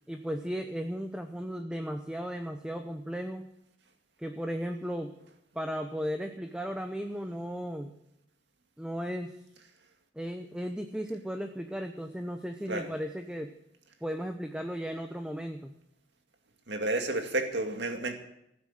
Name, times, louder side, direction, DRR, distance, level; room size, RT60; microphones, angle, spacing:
voice 1, 0.1-3.5 4.2-5.1 5.5-7.9 8.8-9.4 10.1-13.5 14.0-15.7, equal, 5° right, 6 dB, 0.7 m, -35 dB
voice 2, 16.7-18.2, right 2 dB, 60° right, 4 dB, 2.3 m, -31 dB
16.5 x 9.7 x 7.5 m, 0.82 s
head